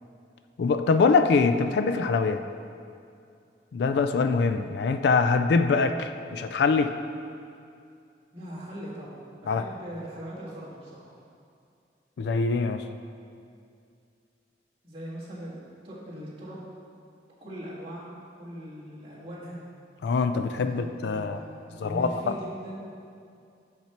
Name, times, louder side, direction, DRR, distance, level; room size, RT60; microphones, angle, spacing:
voice 1, 0.6-2.4 3.7-6.9 9.5-9.6 12.2-12.8 20.0-21.4 21.8-22.1, left 4 dB, 65° left, 8 dB, 0.3 m, -23 dB
voice 2, 8.3-11.2 14.8-16.6 17.4-19.6 20.6-23.1, equal, 30° right, -8 dB, 1.8 m, -40 dB
6.7 x 5.7 x 4.4 m, 2.4 s
head